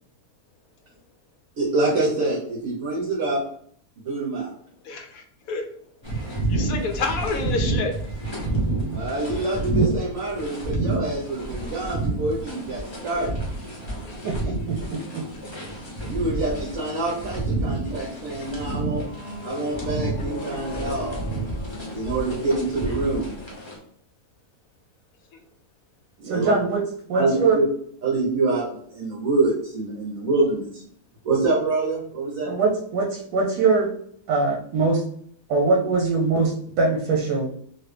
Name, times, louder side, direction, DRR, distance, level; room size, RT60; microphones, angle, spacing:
voice 1, 1.6-3.4 4.0-4.5 8.9-13.4 16.0-19.0 19.4-23.3 26.2-26.5 27.1-27.6 28.0-30.8 31.2-32.5, right 2 dB, 65° right, -5 dB, 1.2 m, -26 dB
voice 2, 4.8-5.7 6.5-7.9 14.1-14.3, left 4 dB, 70° left, 4 dB, 1.0 m, -29 dB
sound 1, 6.0-23.8, right 2 dB, 30° left, 0.5 m, -29 dB
voice 3, 14.2-15.3 26.2-26.8 27.1-27.6 32.5-33.9 34.3-35.0 35.5-37.5, right 4 dB, 85° right, 0 dB, 1.2 m, -22 dB
3.0 x 2.5 x 3.2 m, 0.64 s
omnidirectional pair, 1.6 m